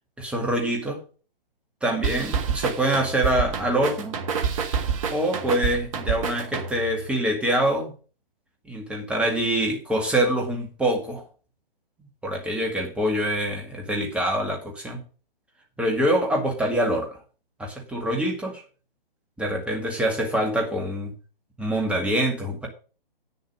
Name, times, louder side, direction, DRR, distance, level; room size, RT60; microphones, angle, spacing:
voice 1, 0.2-1.0 1.8-4.1 5.1-7.9 8.7-11.2 12.2-15.0 15.8-17.2 17.6-18.6 19.4-21.1 21.6-22.7, right 1 dB, 5° right, 1 dB, 2.1 m, -25 dB
sound 1, 2.0-7.0, right 6 dB, 35° right, 1.4 m, -28 dB
9.4 x 6.8 x 6.1 m, 0.37 s
figure-of-eight pair, 135°, 29 cm